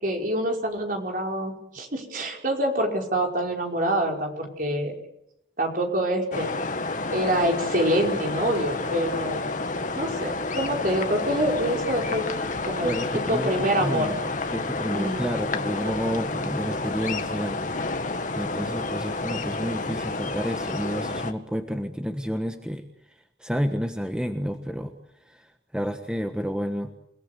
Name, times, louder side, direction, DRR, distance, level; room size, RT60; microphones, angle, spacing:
voice 1, 0.0-4.9 5.6-6.5 7.1-9.5 10.0-12.2 12.6-12.9 13.3-14.2 14.9-15.2, right 1 dB, 45° right, 2 dB, 5.3 m, -26 dB
sound 1, 6.3-21.3, left 3 dB, 45° left, 1.8 m, -30 dB
voice 2, 12.8-14.2 14.5-24.9 25.2-26.9, equal, 5° right, 6 dB, 1.3 m, -30 dB
28.5 x 18.5 x 8.3 m, 0.82 s
head